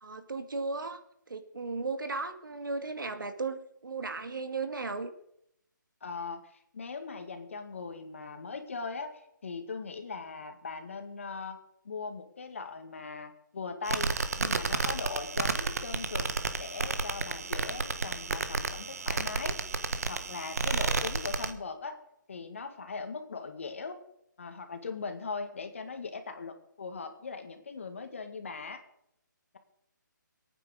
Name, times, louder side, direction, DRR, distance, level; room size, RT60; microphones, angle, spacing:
voice 1, 0.0-1.0 1.3-5.1, right 3 dB, 80° right, 8 dB, 2.3 m, -35 dB
voice 2, 6.0-11.6 11.8-16.3 16.6-22.0 22.3-23.9 24.4-28.8, left 4 dB, 40° left, 6 dB, 2.0 m, -40 dB
sound 1, 13.8-21.5, right 4 dB, 50° right, 1.4 m, -32 dB
22.0 x 9.2 x 6.5 m, 0.76 s
hypercardioid pair, 180°, 11 cm